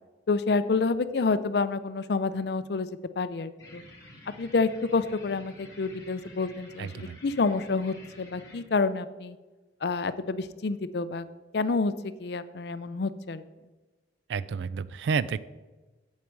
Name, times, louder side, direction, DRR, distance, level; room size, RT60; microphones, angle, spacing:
voice 1, 0.3-2.9 3.2-3.8 4.4-9.4 9.8-11.3 11.5-13.4, left 4 dB, 65° left, 13 dB, 0.5 m, -28 dB
sound 1, 3.6-8.6, left 1 dB, 20° left, 3.3 m, -50 dB
voice 2, 6.8-7.2 14.3-15.4, right 5 dB, 80° right, 17 dB, 0.3 m, -30 dB
8.5 x 7.6 x 4.6 m, 1.2 s
head